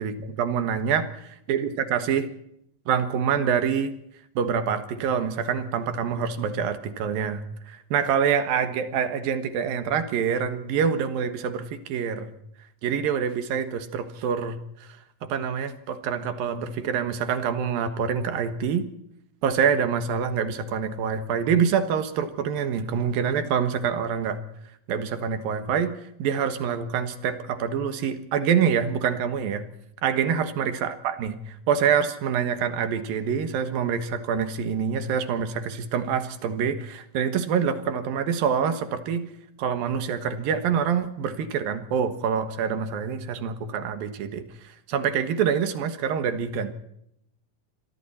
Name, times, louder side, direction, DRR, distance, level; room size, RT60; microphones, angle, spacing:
voice 1, 0.0-2.3 2.9-3.9 4.4-12.3 12.8-14.9 15.2-18.9 19.4-24.4 24.9-25.9 26.2-29.7 30.0-39.3 39.6-46.7, right 7 dB, 75° right, 9 dB, 3.2 m, -26 dB
26.5 x 23.5 x 4.3 m, 0.75 s
omnidirectional pair, 4.2 m